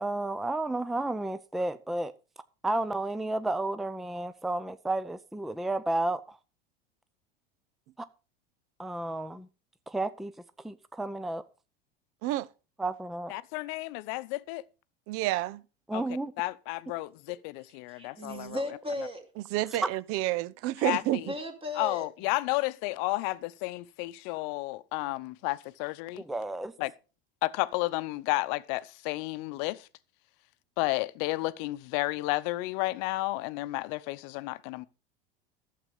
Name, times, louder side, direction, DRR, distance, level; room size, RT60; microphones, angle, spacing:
voice 1, 0.0-2.1 2.6-6.4 8.8-9.5 9.9-10.3 10.6-11.4 12.8-13.3 15.9-16.3 26.2-26.7, right 2 dB, ahead, 0.6 m, -32 dB
voice 2, 13.3-14.6 15.9-16.0 16.4-18.6 20.8-21.2 21.8-26.2 26.8-26.9 27.4-29.9 30.8-34.9, left 20 dB, 60° left, 0.8 m, -32 dB
voice 3, 15.1-15.6 19.5-21.3, right 16 dB, 50° right, 0.7 m, -29 dB
voice 4, 17.9-19.3 21.0-22.1, left 1 dB, 20° right, 2.9 m, -36 dB
12.0 x 7.7 x 5.4 m
hypercardioid pair, 90°, 29 cm